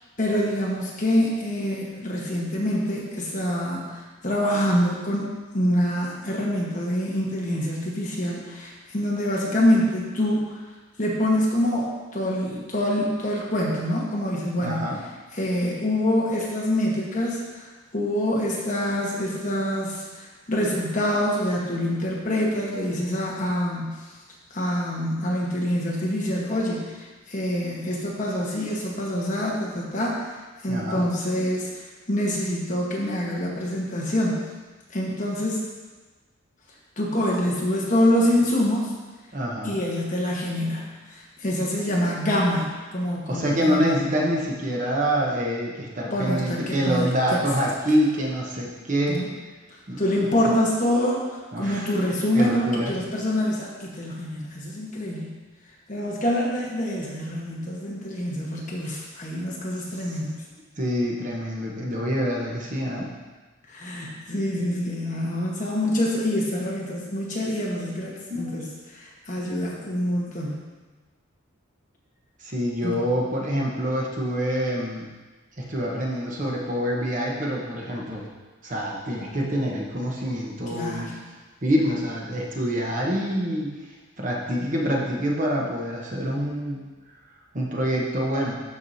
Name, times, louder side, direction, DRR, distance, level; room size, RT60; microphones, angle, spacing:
voice 1, 0.2-5.3 5.5-10.6 11.0-14.8 15.3-24.1 24.5-30.3 30.6-34.4 34.9-35.6 37.0-38.9 39.6-44.0 46.1-47.4 49.1-49.3 50.0-55.3 55.9-60.3 63.7-70.6 72.8-73.0 80.7-81.1, left 1 dB, 35° left, -4 dB, 1.3 m, -26 dB
voice 2, 14.6-15.0 30.7-31.0 39.3-39.8 43.3-49.2 49.9-50.0 50.4-50.5 51.5-51.9 52.3-52.9 60.8-63.1 68.3-68.6 72.4-75.1 75.6-78.3 78.6-81.2 81.6-83.7 84.2-86.8 87.5-88.6, equal, 35° right, -2 dB, 1.0 m, -26 dB
12.0 x 4.8 x 2.8 m, 1.3 s
head